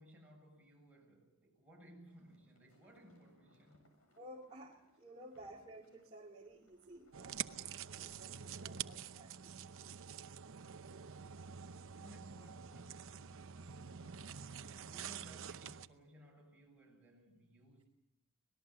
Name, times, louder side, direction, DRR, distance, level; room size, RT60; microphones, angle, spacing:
voice 1, 0.0-3.9 5.3-5.5 11.9-17.9, equal, 5° right, 7.7 m, -61 dB
sound 1, 2.1-12.9 13.7-15.2, equal, 70° left, 7.3 m, -72 dB
voice 2, 4.2-7.4 7.9-9.7, right 1 dB, 30° right, 2.4 m, -55 dB
sound 2, 7.1-15.9, right 8 dB, 65° right, 0.8 m, -47 dB
25.5 x 19.5 x 6.8 m
head